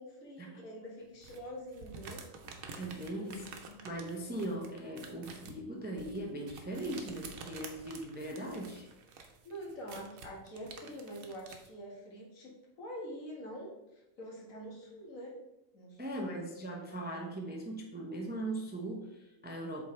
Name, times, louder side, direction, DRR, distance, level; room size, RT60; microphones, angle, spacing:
voice 1, 0.0-2.2 3.1-3.8 4.3-4.4 9.4-15.4 15.7-16.3, equal, 80° left, -2 dB, 1.9 m, -46 dB
sound 1, 1.2-11.7, right 4 dB, 90° right, 1.2 m, -50 dB
voice 2, 2.7-3.5 3.8-8.9 16.0-19.8, right 1 dB, 10° right, 1 dB, 0.5 m, -39 dB
7.6 x 4.0 x 3.1 m, 0.92 s
omnidirectional pair, 1.4 m